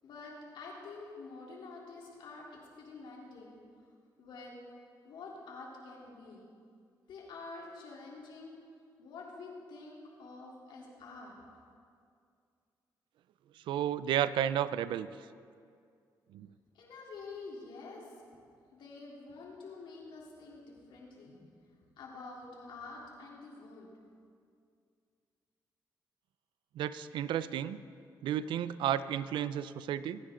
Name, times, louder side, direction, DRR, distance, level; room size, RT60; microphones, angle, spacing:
voice 1, 0.0-3.6 4.2-4.6 5.0-6.5 7.1-8.6 9.0-11.5 16.7-18.1 18.7-21.5 22.0-23.9, left 3 dB, 85° left, -3 dB, 3.5 m, -48 dB
voice 2, 13.7-15.1 16.3-16.5 26.7-27.8 28.2-30.2, right 10 dB, 85° right, 14 dB, 0.5 m, -32 dB
25.0 x 10.0 x 3.8 m, 2.3 s
cardioid pair, 65°, 8 cm